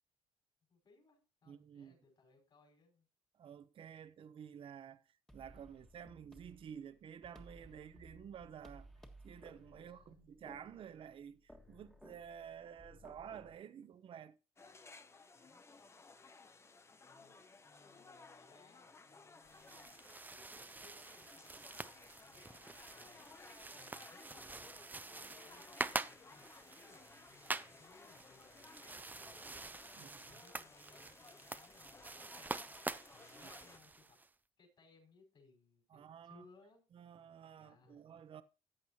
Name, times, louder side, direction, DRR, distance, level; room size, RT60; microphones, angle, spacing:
voice 1, 0.7-3.1 5.7-5.8 9.8-10.3 15.3-16.0 17.0-17.4 17.6-20.0 20.3-23.2 23.7-29.5 29.9-32.7 33.1-34.2 34.6-37.1 37.5-38.1, left 3 dB, 45° left, 5.0 m, -67 dB
voice 2, 1.5-1.9 3.4-5.0 5.3-8.9 9.2-14.4 30.0-30.4 35.9-36.4 36.9-38.4, right 8 dB, 50° right, 0.7 m, -51 dB
sound 1, 5.3-13.6, equal, 5° left, 1.6 m, -59 dB
sound 2, 14.6-33.8, left 4 dB, 25° left, 0.9 m, -59 dB
sound 3, 19.5-34.3, right 3 dB, 15° right, 0.5 m, -46 dB
14.5 x 8.6 x 2.8 m
cardioid pair, 100°, 11 cm